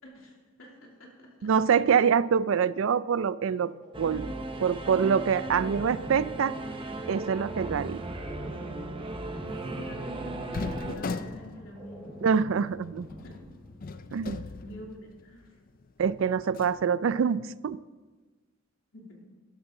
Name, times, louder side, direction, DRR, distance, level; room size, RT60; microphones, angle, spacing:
voice 1, 0.0-1.5 9.4-12.5 13.2-13.4 14.3-15.6 18.9-19.2, equal, 75° left, -1 dB, 2.9 m, -47 dB
voice 2, 1.4-3.7 4.0-4.2 4.6-6.6 7.1-8.0 12.2-13.1 14.1-14.4 16.0-17.8, right 7 dB, 65° right, 18 dB, 0.4 m, -25 dB
sound 1, 3.7-14.2, equal, 5° left, 4.2 m, -46 dB
Singing / Musical instrument, 3.9-11.0, right 2 dB, 25° right, 0.7 m, -37 dB
sound 2, 10.5-15.4 15.8-15.9 16.4-16.8, left 3 dB, 40° left, 0.5 m, -39 dB
12.0 x 12.0 x 3.8 m, 1.3 s
head